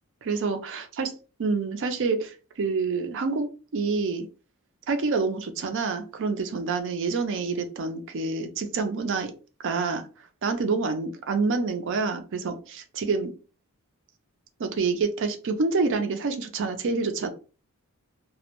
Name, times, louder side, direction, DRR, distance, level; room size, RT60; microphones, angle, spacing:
voice 1, 0.2-1.1 1.4-4.3 4.9-9.3 9.6-10.0 10.4-13.3 14.6-17.3, right 4 dB, 55° right, 7 dB, 0.4 m, -27 dB
2.2 x 2.1 x 2.9 m, 0.34 s
head